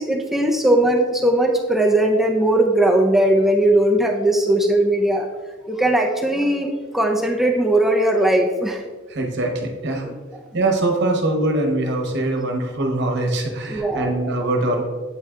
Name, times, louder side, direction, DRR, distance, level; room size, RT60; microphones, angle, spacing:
voice 1, 0.0-5.3 5.7-8.8 10.0-10.1 13.7-14.1, right 1 dB, ahead, 1 dB, 0.4 m, -18 dB
voice 2, 9.1-10.0 10.5-14.9, right 2 dB, 60° right, 3 dB, 1.0 m, -22 dB
8.6 x 3.4 x 3.6 m, 1.4 s
head